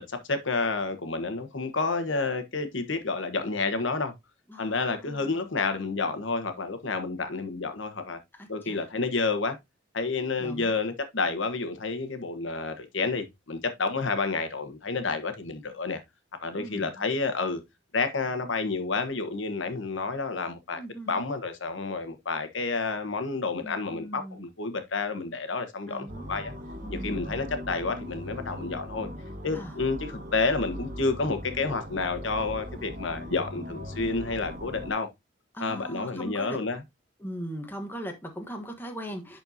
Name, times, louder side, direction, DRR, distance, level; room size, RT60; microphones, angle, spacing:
voice 1, 0.0-4.1 4.6-8.2 8.5-9.6 9.9-16.0 16.4-17.6 17.9-20.8 21.1-26.5 26.9-29.1 29.4-35.1 35.6-36.8, left 3 dB, 75° left, 1.3 m, -30 dB
voice 2, 4.5-5.4 8.3-8.8 10.4-10.8 16.6-17.0 20.7-21.3 23.6-24.4 25.9-26.4 26.8-27.4 29.5-29.8 35.5-36.6 37.2-39.4, right 1 dB, 10° left, 1.2 m, -40 dB
sound 1, 26.1-34.9, equal, 45° right, 1.4 m, -39 dB
10.5 x 4.4 x 2.7 m
head